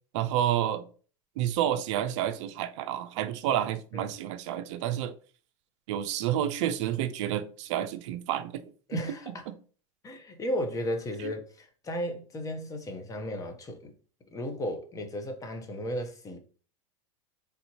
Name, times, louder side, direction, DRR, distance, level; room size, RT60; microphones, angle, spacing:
voice 1, 0.1-0.8 1.4-5.1 5.9-8.6 8.9-9.5 11.2-11.3, right 11 dB, 65° right, 0.4 m, -30 dB
voice 2, 8.9-9.4 10.0-13.9 14.3-16.4, equal, 20° left, 0.8 m, -34 dB
3.5 x 2.7 x 2.9 m
hypercardioid pair, 110°, 16 cm